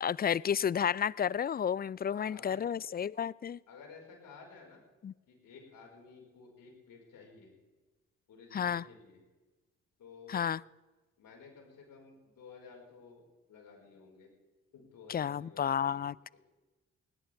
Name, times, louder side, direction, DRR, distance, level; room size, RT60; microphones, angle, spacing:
voice 1, 0.0-3.6 5.0-5.1 8.5-8.8 10.3-10.6 15.1-16.4, left 8 dB, 30° left, 0.4 m, -31 dB
voice 2, 2.1-2.6 3.7-4.8 5.3-7.5 8.3-9.2 10.0-10.5 11.2-14.3 14.7-16.1, left 5 dB, 70° left, 5.1 m, -53 dB
20.0 x 18.0 x 3.5 m
hypercardioid pair, 40°, 35 cm